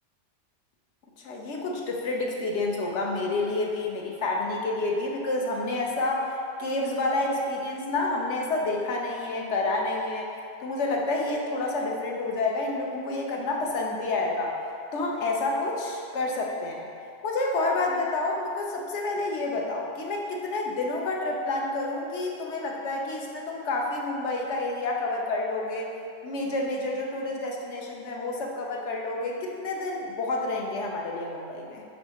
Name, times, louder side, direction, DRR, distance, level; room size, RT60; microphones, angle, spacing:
voice 1, 1.2-6.3 6.6-10.3 10.6-14.6 14.9-16.9 17.2-25.9 26.2-31.8, left 2 dB, 75° left, -1 dB, 1.0 m, -29 dB
9.8 x 3.4 x 2.9 m, 2.6 s
omnidirectional pair, 1.2 m